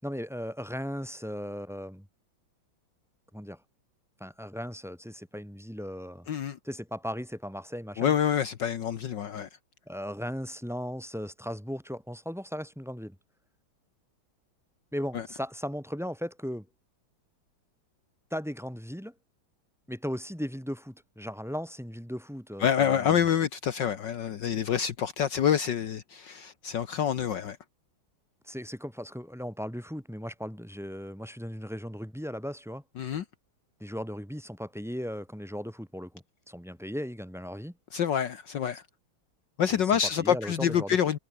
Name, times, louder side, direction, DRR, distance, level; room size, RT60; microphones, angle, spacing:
voice 1, 0.0-2.1 3.3-3.6 4.2-6.3 6.6-8.2 9.9-13.2 14.9-16.7 18.3-19.1 19.9-23.3 28.4-32.8 33.8-37.7 39.7-39.8 40.2-41.0, equal, ahead, 5.2 m, -37 dB
voice 2, 8.0-9.5 15.1-15.2 22.6-27.6 33.0-33.2 37.9-38.8 39.6-41.2, left 8 dB, 65° left, 1.8 m, -27 dB
omnidirectional pair, 2.2 m